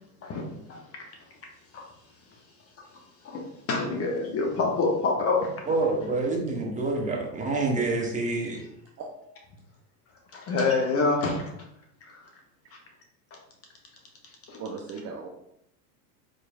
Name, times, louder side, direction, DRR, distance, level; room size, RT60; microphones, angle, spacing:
voice 1, 3.7-5.6 10.3-11.5 14.5-14.6, left 3 dB, 30° left, 1 dB, 0.6 m, -26 dB
voice 2, 5.7-8.6, right 3 dB, 15° right, -1 dB, 0.9 m, -27 dB
voice 3, 6.6-7.3 9.0-9.1 14.6-15.3, right 5 dB, 35° right, 0 dB, 0.5 m, -39 dB
4.1 x 3.0 x 2.3 m, 0.76 s
hypercardioid pair, 95°, 48 cm